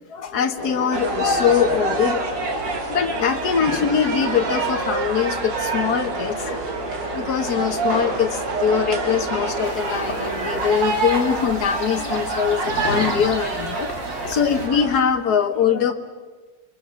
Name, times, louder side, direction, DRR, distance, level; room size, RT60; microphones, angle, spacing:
voice 1, 0.1-2.2 2.9-6.6 7.1-13.9 14.3-15.9, left 7 dB, 55° left, 6 dB, 1.8 m, -22 dB
sound 1, 0.6-10.6, equal, 50° right, 5.8 m, -32 dB
sound 2, 0.9-15.0, right 3 dB, 70° right, 2.8 m, -27 dB
sound 3, 9.6-14.7, left 2 dB, 35° left, 2.7 m, -33 dB
30.0 x 23.0 x 6.5 m, 1.4 s
omnidirectional pair, 2.1 m